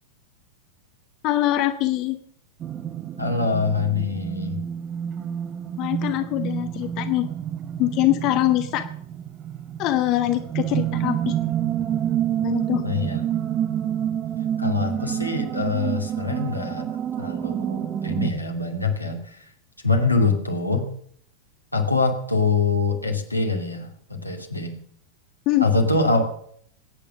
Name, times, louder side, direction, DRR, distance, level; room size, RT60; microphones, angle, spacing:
voice 1, 1.2-2.2 5.8-7.3 7.8-8.8 9.8-11.4 12.4-12.8 25.5-25.7, left 15 dB, 40° left, 9 dB, 1.1 m, -23 dB
sound 1, 2.6-18.3, right 10 dB, 30° right, 0.9 m, -28 dB
voice 2, 3.2-4.6 12.8-13.2 14.6-16.9 17.2-19.5 19.8-20.9 21.7-24.8 25.6-26.2, left 3 dB, 85° left, 2 dB, 2.6 m, -24 dB
21.0 x 9.1 x 6.8 m, 0.64 s
figure-of-eight pair, 90°, 0 cm